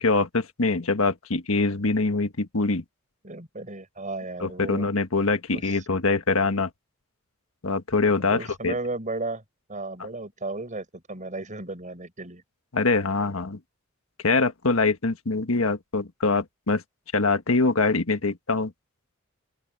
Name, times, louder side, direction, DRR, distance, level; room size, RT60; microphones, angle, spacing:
voice 1, 0.0-2.8 4.4-6.7 7.6-8.7 12.7-13.6 14.2-16.8 17.1-18.7, left 3 dB, 90° left, 1.4 m, -24 dB
voice 2, 3.2-4.9 5.5-5.8 8.3-9.4 9.7-12.4, right 2 dB, 40° right, 5.8 m, -34 dB
open air
head